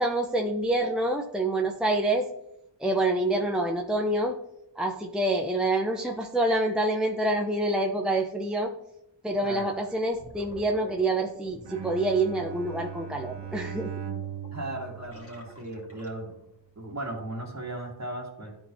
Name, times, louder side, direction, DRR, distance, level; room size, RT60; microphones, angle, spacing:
voice 1, 0.0-2.3 2.8-4.4 4.8-8.7 9.2-13.9, right 2 dB, ahead, 1 dB, 0.6 m, -27 dB
Gurgling, 9.4-9.6 10.0-16.5, left 2 dB, 30° left, 2.1 m, -50 dB
voice 2, 9.4-9.8 14.5-16.4 16.8-18.5, right 1 dB, 35° right, -1 dB, 2.0 m, -36 dB
Bowed string instrument, 11.7-16.1, right 9 dB, 60° right, 0.7 m, -39 dB
11.5 x 4.5 x 2.7 m, 0.80 s
wide cardioid pair, 60°, 47 cm